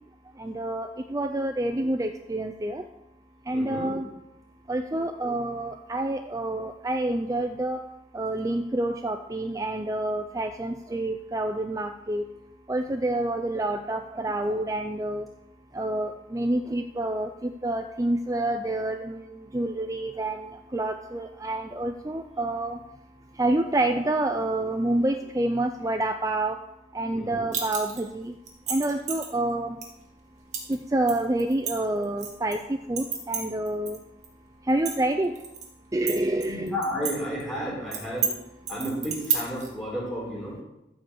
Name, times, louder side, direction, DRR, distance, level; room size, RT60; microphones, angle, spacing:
voice 1, 0.4-2.8 3.5-4.1 4.7-7.8 8.1-12.2 12.7-15.3 15.7-19.2 19.5-22.8 23.4-26.6 26.9-28.3 28.7-29.8 30.7-32.6 32.9-34.0 34.7-35.3 35.9-36.7, right 1 dB, 15° right, 6 dB, 0.4 m, -28 dB
voice 2, 3.5-3.9 27.1-27.5 36.5-38.3 38.7-40.6, equal, ahead, -6 dB, 4.5 m, -32 dB
sound 1, 27.5-28.1 28.5-29.3 29.8-29.9 30.5-30.8 31.1-32.6 33.0-34.0 34.2-34.3 34.7-35.7 36.1-37.1 37.4-37.5 37.9-38.3 38.7-39.7, right 7 dB, 40° right, 2.1 m, -30 dB
14.0 x 5.3 x 7.2 m, 0.90 s
head